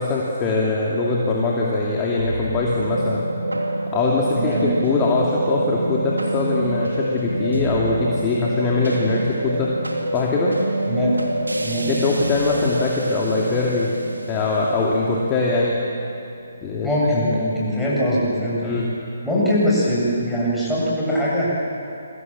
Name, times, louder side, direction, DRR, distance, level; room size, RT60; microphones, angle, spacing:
voice 1, 0.0-3.3 3.9-9.7 10.1-10.5 11.9-13.9 14.3-15.8 16.6-16.9 18.6-18.9, left 3 dB, 20° left, -3 dB, 2.7 m, -22 dB
sound 1, 2.2-16.6, right 1 dB, 75° right, 2.9 m, -26 dB
voice 2, 4.3-4.7 10.9-11.2 11.6-11.9 16.8-18.8 19.2-21.5, equal, ahead, -8 dB, 7.8 m, -21 dB
29.5 x 23.5 x 7.4 m, 2.7 s
figure-of-eight pair, 140°, 0 cm